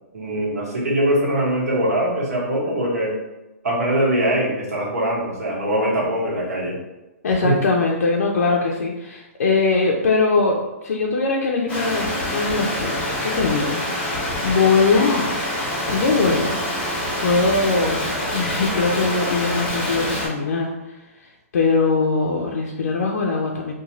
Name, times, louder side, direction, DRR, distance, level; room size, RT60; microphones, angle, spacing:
voice 1, 0.1-3.1 3.6-6.8 7.4-7.5, right 1 dB, 80° right, -3 dB, 1.1 m, -22 dB
voice 2, 7.2-15.5 15.8-16.6 17.2-23.7, left 4 dB, 80° left, -1 dB, 0.4 m, -21 dB
sound 1, 11.7-20.3, left 1 dB, 15° left, 0.7 m, -26 dB
2.4 x 2.3 x 2.9 m, 1.0 s
hypercardioid pair, 160°, 8 cm